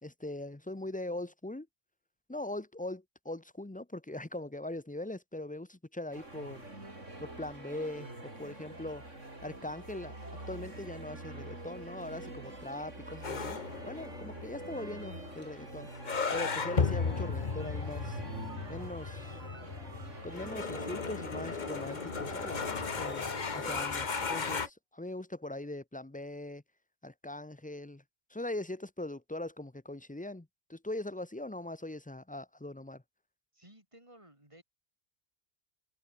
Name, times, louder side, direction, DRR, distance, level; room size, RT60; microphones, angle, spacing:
voice 1, 0.0-1.7 2.3-6.7 7.2-9.0 9.4-10.1 10.5-13.6 13.8-15.9 16.3-18.2 18.7-19.4 20.2-26.6 27.0-28.0 28.3-33.0, left 1 dB, 10° left, 0.4 m, -41 dB
sound 1, 6.1-24.7, right 2 dB, 60° right, 6.8 m, -46 dB
sound 2, 13.2-24.7, left 5 dB, 35° left, 1.2 m, -35 dB
sound 3, 16.2-22.4, right 4 dB, 80° right, 3.3 m, -56 dB
voice 2, 33.5-34.6, right 1 dB, 20° right, 7.1 m, -57 dB
omnidirectional pair, 1.4 m